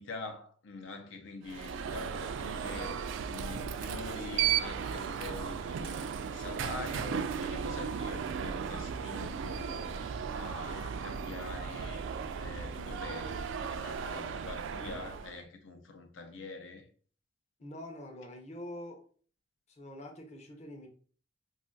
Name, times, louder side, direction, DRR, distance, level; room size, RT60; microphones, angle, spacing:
voice 1, 0.0-3.0 3.3-12.1 12.3-16.9, left 3 dB, 85° left, 0.6 m, -45 dB
Alarm, 1.4-15.4, right 7 dB, 80° right, 0.3 m, -36 dB
voice 2, 17.6-19.0 19.7-20.9, left 1 dB, 35° left, 0.6 m, -45 dB
2.4 x 2.4 x 3.8 m
head